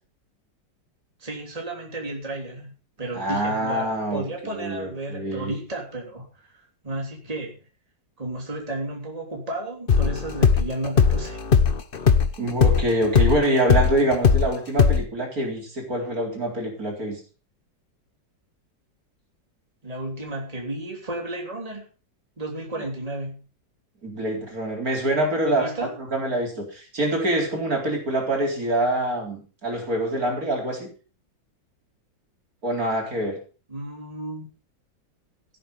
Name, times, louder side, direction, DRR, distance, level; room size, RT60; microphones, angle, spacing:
voice 1, 1.2-2.7 3.0-7.6 8.2-11.4 19.8-21.9 22.4-23.4 25.4-25.9 33.7-34.5, right 1 dB, 20° right, 0 dB, 3.2 m, -33 dB
voice 2, 3.1-4.3 4.6-5.5 12.4-17.2 24.0-25.7 26.1-30.9 32.6-33.4, right 1 dB, 50° right, 1 dB, 4.3 m, -25 dB
sound 1, 9.9-14.5 14.8-15.0, left 6 dB, 40° left, 0.9 m, -18 dB
16.5 x 8.2 x 5.4 m, 0.36 s
omnidirectional pair, 2.0 m